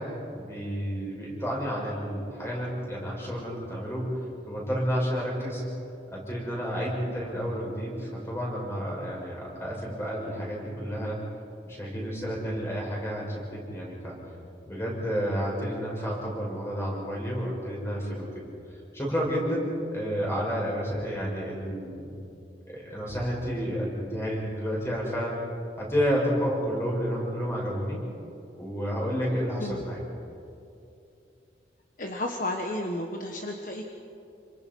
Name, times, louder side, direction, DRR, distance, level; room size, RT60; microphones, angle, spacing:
voice 1, 0.0-5.7 6.1-11.2 11.6-14.1 14.6-18.3 18.7-22.1 22.7-25.4 25.8-28.0 28.5-30.0, equal, 15° left, -3 dB, 6.4 m, -30 dB
voice 2, 32.0-33.8, left 1 dB, 45° left, 2 dB, 1.4 m, -32 dB
28.5 x 25.5 x 5.5 m, 2.7 s
head